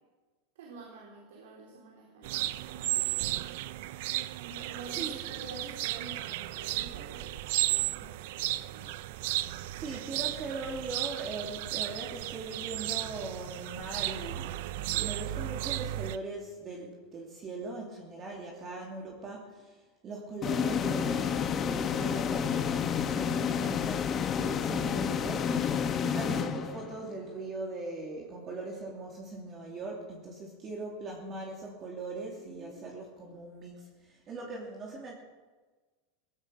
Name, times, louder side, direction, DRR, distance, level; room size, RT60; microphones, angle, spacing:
voice 1, 0.5-3.5 4.4-7.4 7.7-8.9 23.2-23.7 32.4-32.9, right 3 dB, 85° right, 0 dB, 3.3 m, -48 dB
sound 1, 2.2-16.2, right 16 dB, 65° right, 0.6 m, -34 dB
voice 2, 9.7-14.5 14.9-19.8 20.0-24.0 24.3-35.1, right 3 dB, 30° right, -1 dB, 2.8 m, -40 dB
sound 2, 20.4-27.2, left 7 dB, 25° left, 1.1 m, -30 dB
18.0 x 15.0 x 5.2 m, 1.3 s
supercardioid pair, 145°, 0 cm